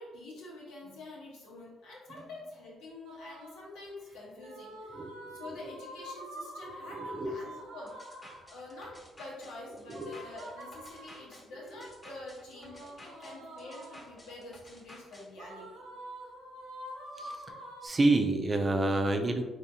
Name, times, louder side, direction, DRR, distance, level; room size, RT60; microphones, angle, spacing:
voice 1, 0.0-5.1 5.3-8.2 8.4-15.8, left 2 dB, 90° left, -4 dB, 1.2 m, -47 dB
sound 1, 3.1-3.7 4.4-8.5 9.9-11.4 12.5-14.3 15.4-17.9, right 1 dB, 85° right, 0.7 m, -46 dB
voice 2, 4.9-5.8 6.6-7.4 9.9-10.1 11.7-11.9 17.2-19.4, right 2 dB, 30° right, 4 dB, 0.5 m, -30 dB
sound 2, 7.9-15.3, left 1 dB, 25° left, 1.0 m, -54 dB
3.6 x 3.1 x 2.8 m, 1.2 s
cardioid pair, 90°, 0 cm